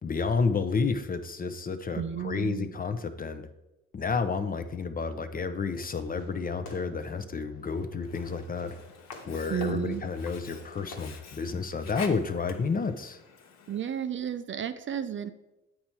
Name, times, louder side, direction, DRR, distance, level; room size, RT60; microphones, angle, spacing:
voice 1, 0.0-3.5 3.9-8.8 9.2-13.2, left 4 dB, 30° left, 9 dB, 0.6 m, -30 dB
voice 2, 2.0-2.7 9.5-10.0 13.7-15.3, right 9 dB, 40° right, 11 dB, 0.5 m, -32 dB
Fireworks, 5.7-11.8, left 2 dB, 90° left, 1.5 m, -51 dB
Sink (filling or washing), 8.0-14.0, left 5 dB, 60° left, 0.9 m, -47 dB
8.6 x 4.4 x 4.4 m, 0.96 s
cardioid pair, 90°, 30 cm